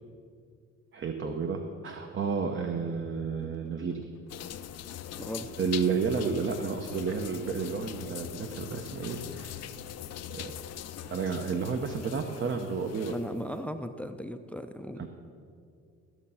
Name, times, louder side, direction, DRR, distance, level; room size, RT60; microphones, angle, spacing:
voice 1, 0.9-4.1 5.6-9.7 10.3-10.5 11.1-13.2 15.0-15.1, right 5 dB, 40° right, 5 dB, 0.8 m, -31 dB
sound 1, 3.4-11.2, left 4 dB, 90° left, 1.1 m, -54 dB
sound 2, 4.3-13.4, left 11 dB, 55° left, 0.5 m, -42 dB
voice 2, 5.2-5.5 13.1-15.1, equal, 5° left, 9 dB, 0.5 m, -37 dB
14.5 x 6.5 x 5.6 m, 2.4 s
cardioid pair, 90°, 30 cm